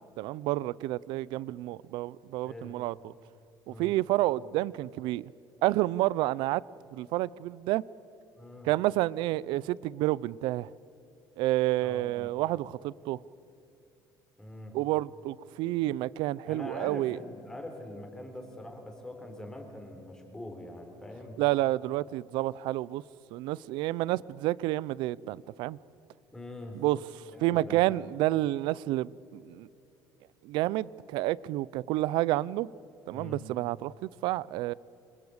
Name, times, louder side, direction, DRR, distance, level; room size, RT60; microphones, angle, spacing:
voice 1, 0.2-3.1 3.7-5.3 5.6-6.6 6.9-7.8 8.6-10.7 11.4-13.2 14.7-17.2 21.4-23.0 23.3-25.8 26.7-27.0 27.4-29.7 30.4-32.7 33.1-34.7, right 16 dB, 90° right, 0.6 m, -29 dB
voice 2, 8.4-8.7 11.8-12.3 14.4-14.7 16.5-21.4 26.3-26.8 27.3-27.8 33.1-33.4, left 1 dB, 10° left, 3.9 m, -43 dB
28.0 x 25.0 x 8.1 m
cardioid pair, 175°, 8 cm